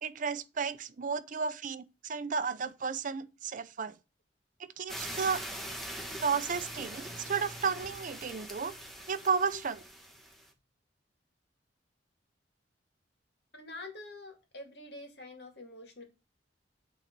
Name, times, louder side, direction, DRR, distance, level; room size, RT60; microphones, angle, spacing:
voice 1, 0.0-3.9 4.8-5.4 6.2-8.7 9.1-9.8, right 5 dB, 45° right, 0.5 m, -33 dB
sound 1, 4.9-10.5, equal, ahead, 1.5 m, -42 dB
voice 2, 13.5-16.0, left 2 dB, 65° left, 2.4 m, -46 dB
8.8 x 4.0 x 6.0 m
head